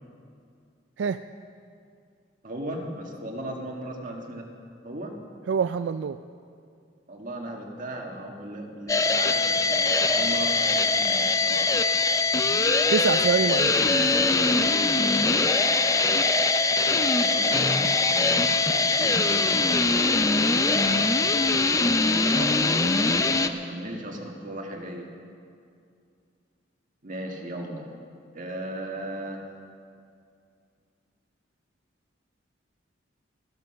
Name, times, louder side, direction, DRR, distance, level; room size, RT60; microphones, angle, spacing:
voice 1, 2.4-4.5 4.8-5.2 7.1-11.7 15.4-15.5 17.1-21.1 21.4-25.1 27.0-27.8 28.3-29.4, right 1 dB, 45° right, 1 dB, 1.9 m, -37 dB
voice 2, 5.5-6.2 12.9-14.0, right 6 dB, 75° right, 11 dB, 0.3 m, -25 dB
sound 1, 8.9-23.5, left 3 dB, 20° left, 0.5 m, -22 dB
15.0 x 12.0 x 6.6 m, 2.4 s
head